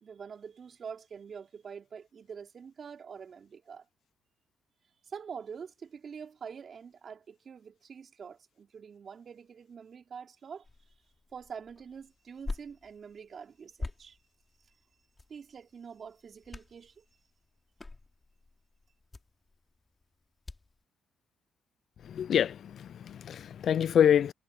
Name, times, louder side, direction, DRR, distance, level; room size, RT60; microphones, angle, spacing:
voice 1, 0.0-3.8 5.0-10.7 11.3-14.2 15.3-17.0, right 6 dB, 50° right, 3.3 m, -45 dB
sound 1, 10.6-20.8, left 3 dB, 20° left, 5.8 m, -46 dB
voice 2, 22.1-24.3, left 9 dB, 60° left, 0.4 m, -26 dB
cardioid pair, 90°, 0 cm